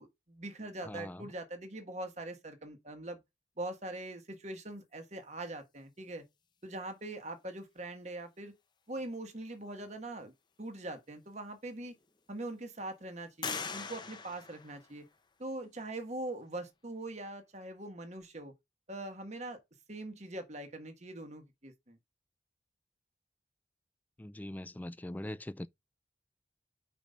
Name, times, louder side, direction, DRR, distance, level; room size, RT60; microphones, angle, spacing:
voice 1, 0.0-3.2 3.6-6.2 6.6-8.5 8.9-10.3 10.6-11.9 12.3-15.0 15.4-18.5 18.9-19.6 19.9-22.0, right 2 dB, 40° right, 1.5 m, -42 dB
voice 2, 0.8-1.3 24.2-25.7, left 1 dB, 10° left, 0.3 m, -42 dB
sound 1, 11.2-11.3 11.8-12.5 13.4-15.4, left 5 dB, 25° left, 0.8 m, -42 dB
5.4 x 4.9 x 5.4 m
head